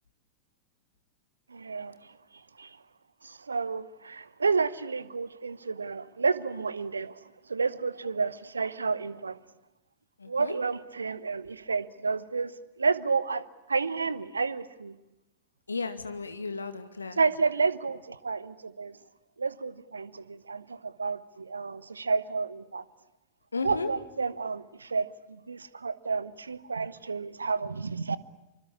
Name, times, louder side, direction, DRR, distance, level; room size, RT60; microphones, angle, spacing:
voice 1, 1.5-1.9 2.6-2.7 3.2-7.1 7.5-9.4 10.3-12.5 12.8-13.4 13.7-14.9 17.1-19.0 19.4-22.8 23.6-28.2, right 4 dB, 75° right, 18 dB, 1.0 m, -30 dB
voice 2, 10.2-10.5 15.7-17.2 23.5-23.9, left 4 dB, 80° left, 9 dB, 2.2 m, -34 dB
26.0 x 25.0 x 8.5 m, 0.94 s
figure-of-eight pair, 90°, 0 cm